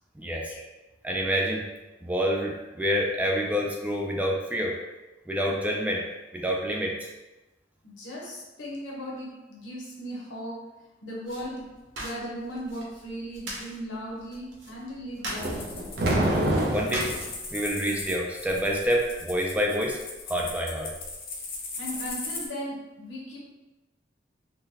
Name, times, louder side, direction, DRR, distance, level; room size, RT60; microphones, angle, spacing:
voice 1, 0.2-0.5 1.0-1.6 2.0-4.8 5.3-6.0 6.3-7.1 16.6-17.1 17.5-20.0 20.3-20.9, equal, 10° right, -1 dB, 0.3 m, -27 dB
voice 2, 7.8-10.7 11.0-11.7 12.0-16.0 21.8-23.4, equal, 85° left, -3 dB, 0.9 m, -37 dB
sound 1, 11.2-17.8, right 1 dB, 90° right, 0.8 m, -41 dB
sound 2, 15.4-22.5, left 3 dB, 50° left, 0.6 m, -38 dB
sound 3, 15.4-17.2, right 1 dB, 55° right, 0.5 m, -26 dB
3.7 x 2.2 x 2.8 m, 1.1 s
head